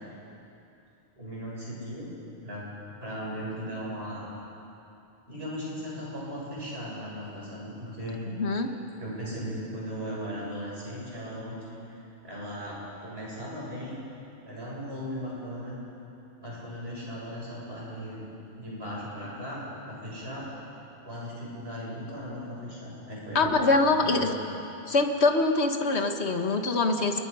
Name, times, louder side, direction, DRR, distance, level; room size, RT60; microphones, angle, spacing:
voice 1, 1.2-2.1 2.4-2.7 3.0-4.3 5.3-8.2 8.9-11.6 12.2-14.0 14.4-15.8 16.4-18.3 18.6-20.5 21.0-23.6 24.0-24.2, equal, 65° right, -6 dB, 7.8 m, -37 dB
voice 2, 8.3-8.7 23.4-24.3 24.9-27.2, left 3 dB, 75° left, 5 dB, 1.8 m, -24 dB
29.0 x 21.0 x 5.6 m, 2.9 s
omnidirectional pair, 1.1 m